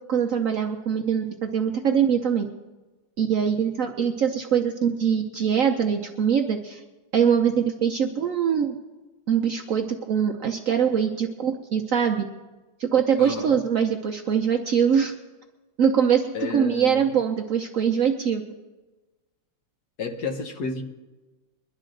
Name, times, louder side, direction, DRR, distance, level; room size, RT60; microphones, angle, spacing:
voice 1, 0.1-2.5 3.2-6.8 7.1-8.8 9.3-12.3 12.8-15.1 15.8-18.4, right 7 dB, 60° right, 3 dB, 0.9 m, -23 dB
voice 2, 13.2-13.6 16.3-17.1 20.0-20.8, left 4 dB, 60° left, 4 dB, 1.5 m, -31 dB
22.0 x 11.5 x 3.9 m, 1.2 s
omnidirectional pair, 2.0 m